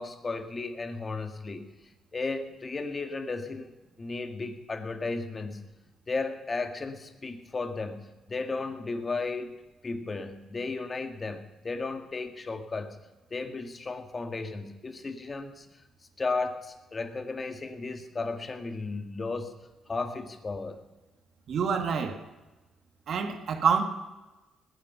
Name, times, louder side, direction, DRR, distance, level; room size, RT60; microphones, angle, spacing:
voice 1, 0.0-1.8 2.1-3.7 4.0-5.6 6.1-9.5 9.8-13.0 13.3-15.7 16.2-19.6 19.9-20.8, left 3 dB, 30° left, 7 dB, 1.7 m, -34 dB
voice 2, 21.5-22.2 23.1-23.8, right 6 dB, 60° right, 6 dB, 2.0 m, -26 dB
20.5 x 9.3 x 5.6 m, 1.1 s
cardioid pair, 90°, 0 cm